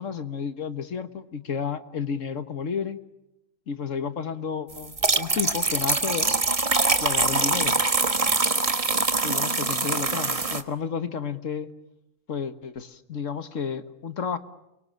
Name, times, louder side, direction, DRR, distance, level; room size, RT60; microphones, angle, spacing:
voice 1, 0.0-3.0 3.7-6.3 7.0-7.8 9.2-11.7 12.3-14.4, left 6 dB, 75° left, 10 dB, 1.8 m, -31 dB
sound 1, 4.8-10.6, right 3 dB, 25° right, 1.4 m, -24 dB
29.0 x 24.5 x 7.4 m, 0.89 s
omnidirectional pair, 1.3 m